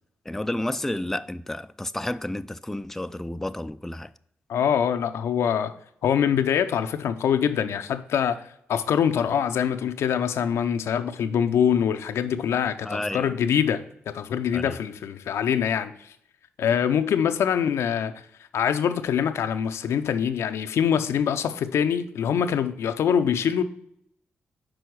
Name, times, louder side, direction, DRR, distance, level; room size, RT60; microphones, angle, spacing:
voice 1, 0.3-4.1 12.8-13.3 14.5-14.8, left 1 dB, 5° left, 0.3 m, -31 dB
voice 2, 4.5-5.7 6.0-8.4 8.7-16.1 16.6-18.1 18.5-23.6, left 8 dB, 75° left, 0.5 m, -24 dB
6.2 x 4.6 x 4.6 m
supercardioid pair, 50°, 5 cm